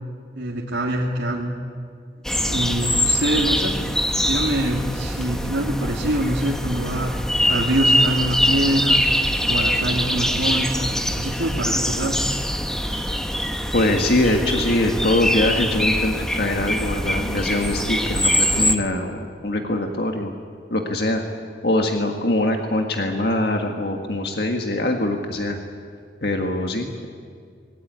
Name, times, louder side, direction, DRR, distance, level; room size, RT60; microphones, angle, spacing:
voice 1, 0.4-1.6 2.4-3.7 4.3-9.0 9.5-12.3 12.8-12.9, right 1 dB, 80° right, -3 dB, 2.4 m, -25 dB
sound 1, 2.2-18.8, equal, 5° left, 1.1 m, -23 dB
voice 2, 13.7-20.3 20.7-21.2 21.6-25.6 26.2-27.1, left 1 dB, 55° left, 3 dB, 1.8 m, -23 dB
25.0 x 21.0 x 9.4 m, 2.1 s
head